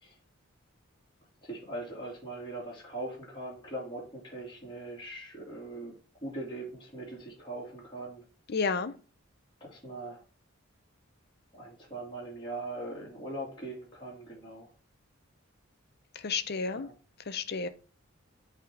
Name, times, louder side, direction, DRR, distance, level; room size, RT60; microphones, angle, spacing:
voice 1, 1.4-5.9 6.2-8.2 9.6-10.2 11.5-14.7 16.7-16.9, right 2 dB, 25° left, -5 dB, 2.5 m, -41 dB
voice 2, 8.5-8.9 16.2-16.9 17.3-17.7, left 5 dB, 50° left, 12 dB, 0.7 m, -31 dB
8.4 x 3.6 x 3.6 m, 0.37 s
head